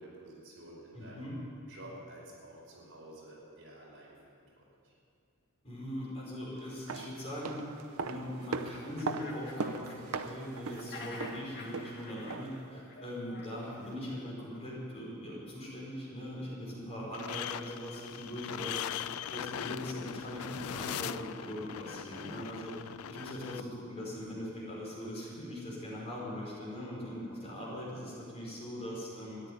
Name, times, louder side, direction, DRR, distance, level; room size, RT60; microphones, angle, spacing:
voice 1, 0.0-1.3 1.7-4.9, right 1 dB, 60° right, -5 dB, 5.2 m, -51 dB
voice 2, 0.9-1.3 5.6-18.8 19.3-29.4, equal, 30° left, -5 dB, 4.7 m, -41 dB
sound 1, 6.7-12.7 12.9-13.0, right 4 dB, 85° right, 0.8 m, -40 dB
sound 2, 8.4-8.5 8.8-10.3 10.6-14.0, left 3 dB, 50° left, 1.9 m, -49 dB
sound 3, 17.1-23.6, left 10 dB, 80° left, 0.4 m, -40 dB
14.0 x 10.5 x 9.4 m, 2.4 s
head